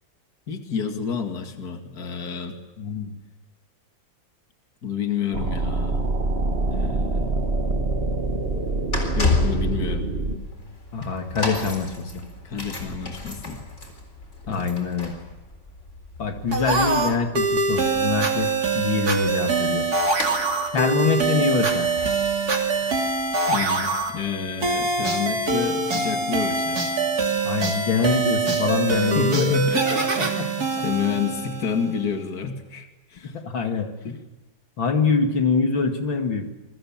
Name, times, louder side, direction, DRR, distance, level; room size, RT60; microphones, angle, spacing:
voice 1, 0.5-2.6 4.8-6.0 6.7-7.5 9.1-10.1 12.4-13.6 14.5-14.7 23.5-26.9 28.9-30.5 30.8-33.4, left 6 dB, 50° left, 5 dB, 2.6 m, -29 dB
voice 2, 2.8-3.2 10.9-12.2 14.5-15.2 16.2-19.9 20.7-21.9 27.4-29.6 30.2-30.8 33.3-34.2 34.8-36.5, left 5 dB, 75° left, 5 dB, 2.9 m, -24 dB
sound 1, 5.3-10.4, right 2 dB, 30° right, 1.9 m, -25 dB
sound 2, 7.9-24.8 25.5-25.6, left 3 dB, 35° left, 4.4 m, -33 dB
sound 3, 16.5-32.0, right 3 dB, 50° right, 3.2 m, -24 dB
28.0 x 22.5 x 7.4 m, 1.0 s
omnidirectional pair, 2.1 m